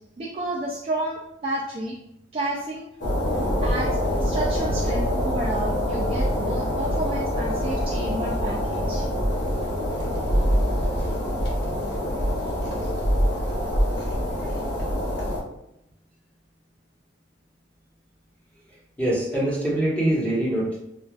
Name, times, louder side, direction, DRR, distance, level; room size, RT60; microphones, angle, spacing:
voice 1, 0.2-2.0 2.3-2.8 3.6-9.1, right 2 dB, 30° right, -3 dB, 0.4 m, -31 dB
sound 1, 3.0-15.4, equal, 60° left, 0.9 m, -25 dB
voice 2, 19.0-20.8, right 1 dB, 5° left, -7 dB, 1.0 m, -23 dB
4.5 x 2.3 x 2.4 m, 0.82 s
head